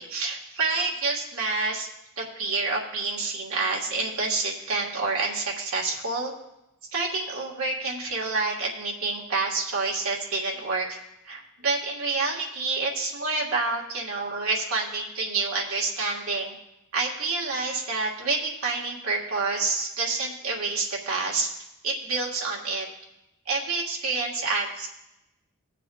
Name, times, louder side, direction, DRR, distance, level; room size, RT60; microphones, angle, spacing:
voice 1, 0.0-1.9 2.2-6.3 6.9-11.0 11.2-16.6 16.9-21.5 21.8-22.9 23.4-24.9, right 3 dB, 80° right, -2 dB, 1.6 m, -28 dB
18.5 x 7.5 x 2.3 m, 0.89 s
head